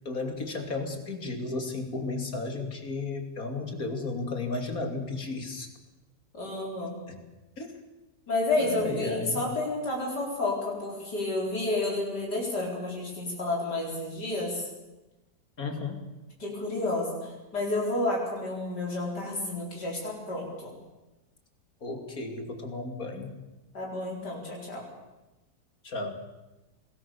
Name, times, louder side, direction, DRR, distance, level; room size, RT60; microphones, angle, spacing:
voice 1, 0.0-5.7 7.1-7.2 7.6-7.7 8.6-9.4 15.6-16.0 21.8-23.4 25.8-26.1, left 3 dB, 55° left, 5 dB, 3.2 m, -34 dB
voice 2, 6.3-7.0 8.3-14.7 16.4-20.8 23.7-24.8, left 2 dB, 75° left, -2 dB, 5.4 m, -30 dB
26.0 x 19.5 x 7.1 m, 1.1 s
omnidirectional pair, 1.8 m